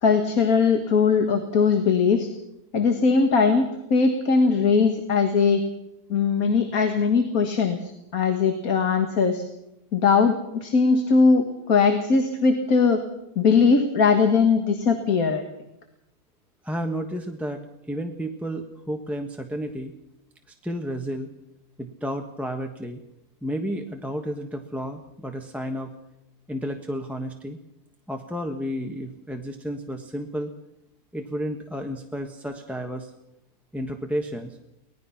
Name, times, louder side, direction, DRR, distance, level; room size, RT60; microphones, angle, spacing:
voice 1, 0.0-2.3 2.7-5.6 6.1-9.4 9.9-13.0 13.4-15.4, left 5 dB, 65° left, 6 dB, 2.1 m, -20 dB
voice 2, 16.6-17.6 17.9-19.9 20.6-21.3 21.8-23.0 23.4-25.9 26.5-27.6 28.1-30.5 31.1-33.1 33.7-34.6, equal, ahead, 3 dB, 1.2 m, -31 dB
24.0 x 19.0 x 5.9 m, 0.85 s
omnidirectional pair, 1.7 m